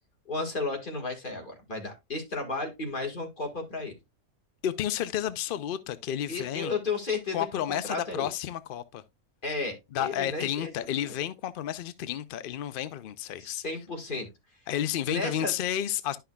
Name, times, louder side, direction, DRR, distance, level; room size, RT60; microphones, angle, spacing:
voice 1, 0.3-4.0 6.3-8.3 9.4-10.7 11.0-11.1 13.4-14.3 15.1-15.5, left 3 dB, 35° left, 1.8 m, -33 dB
voice 2, 4.6-6.8 7.3-9.0 9.9-13.6 14.7-16.2, left 10 dB, 80° left, 0.4 m, -31 dB
11.0 x 5.7 x 2.3 m
omnidirectional pair, 1.5 m